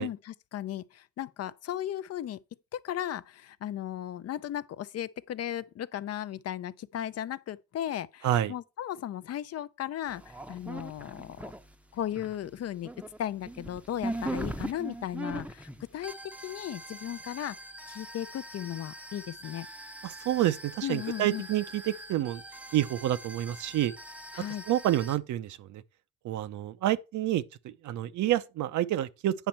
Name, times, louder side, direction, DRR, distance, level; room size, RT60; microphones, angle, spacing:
voice 1, 0.0-2.4 2.7-11.5 11.9-12.9 13.2-16.1 16.4-17.6 17.9-19.7 20.8-21.5 24.3-24.6, left 11 dB, 55° left, 0.5 m, -36 dB
voice 2, 8.2-8.5 20.0-22.4 22.7-23.9 24.7-25.8 26.2-29.3, right 13 dB, 75° right, 0.7 m, -28 dB
sound 1, 10.1-11.7 12.0-25.2, right 1 dB, 5° right, 0.6 m, -41 dB
9.1 x 5.2 x 4.4 m
cardioid pair, 90°, 30 cm